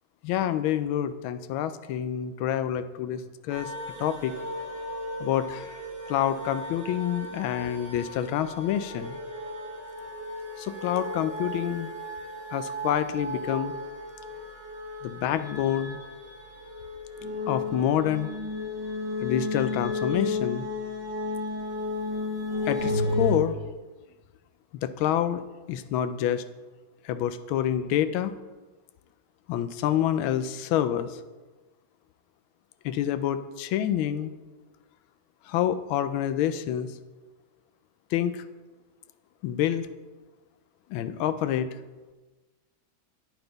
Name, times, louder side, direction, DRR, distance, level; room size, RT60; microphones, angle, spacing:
voice 1, 0.2-3.7 4.0-4.3 5.2-5.7 6.1-9.2 10.6-11.9 12.5-13.7 15.0-16.0 17.5-18.3 19.2-20.6 22.7-23.6 24.8-25.4 25.7-26.4 27.0-28.3 29.5-31.1 32.8-34.3 35.5-36.9 38.1-38.4 39.4-39.9 40.9-41.7, left 10 dB, 90° left, 12 dB, 1.4 m, -27 dB
sound 1, 3.5-23.4, left 2 dB, 60° right, 2.6 m, -34 dB
9.1 x 9.0 x 3.9 m, 1.2 s
omnidirectional pair, 2.2 m